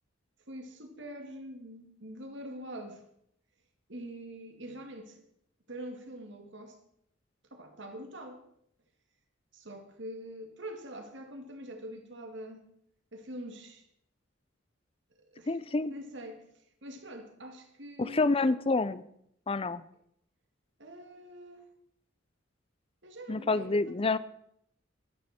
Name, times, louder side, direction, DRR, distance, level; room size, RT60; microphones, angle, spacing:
voice 1, 0.5-3.0 3.9-5.2 5.7-6.8 7.5-8.4 9.5-12.7 13.1-13.9 15.2-15.6 15.9-18.3 20.8-21.7 23.0-24.2, right 1 dB, 60° right, 2.2 m, -44 dB
voice 2, 15.5-15.9 18.0-19.0 19.5-19.8 23.3-24.2, left 3 dB, 30° left, 0.5 m, -28 dB
22.5 x 9.7 x 4.4 m
head